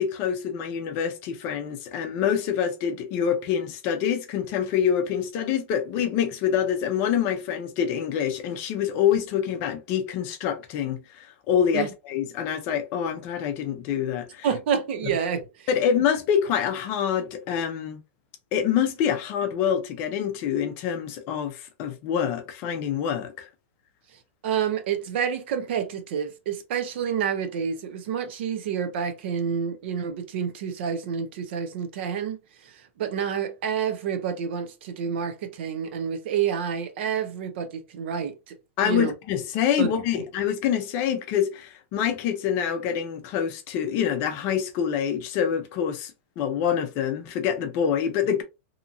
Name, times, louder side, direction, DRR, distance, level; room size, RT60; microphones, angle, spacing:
voice 1, 0.0-14.5 15.7-18.0 18.5-23.5 38.8-48.4, left 8 dB, 30° left, 0.5 m, -26 dB
voice 2, 14.4-15.7 24.4-32.4 33.0-38.5 38.8-39.1 39.8-39.9 40.2-40.3, right 7 dB, 55° right, 0.6 m, -28 dB
2.8 x 2.5 x 2.5 m
supercardioid pair, 165°, 7 cm